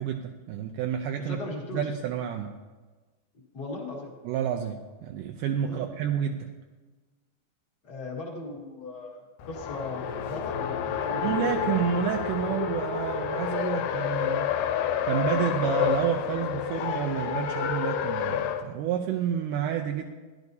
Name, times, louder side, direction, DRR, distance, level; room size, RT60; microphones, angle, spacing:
voice 1, 0.0-1.4 1.7-2.5 4.3-6.5 11.1-14.5 15.0-20.1, right 9 dB, 80° right, 3 dB, 2.1 m, -29 dB
voice 2, 1.2-1.9 3.5-4.1 5.6-5.9 7.8-11.6, left 3 dB, 40° left, -2 dB, 1.7 m, -38 dB
Race car auto racing, 9.4-18.6, left 8 dB, 80° left, 2.2 m, -29 dB
15.5 x 11.0 x 2.7 m, 1.3 s
omnidirectional pair, 3.9 m